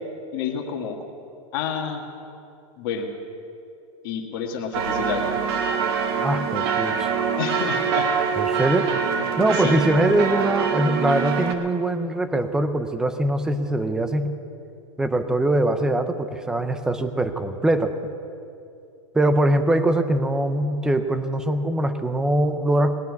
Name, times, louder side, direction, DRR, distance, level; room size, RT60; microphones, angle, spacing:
voice 1, 0.3-1.0 1.5-2.0 2.8-3.1 4.0-5.4 7.4-8.1 9.5-9.8, left 7 dB, 40° left, 3 dB, 1.6 m, -29 dB
sound 1, 4.7-11.5, right 6 dB, 45° right, 1.2 m, -24 dB
voice 2, 6.2-7.1 8.4-8.9 9.4-14.3 15.0-18.0 19.1-22.9, right 1 dB, 5° right, 9 dB, 0.4 m, -22 dB
19.5 x 7.0 x 9.4 m, 2.7 s
supercardioid pair, 165°, 17 cm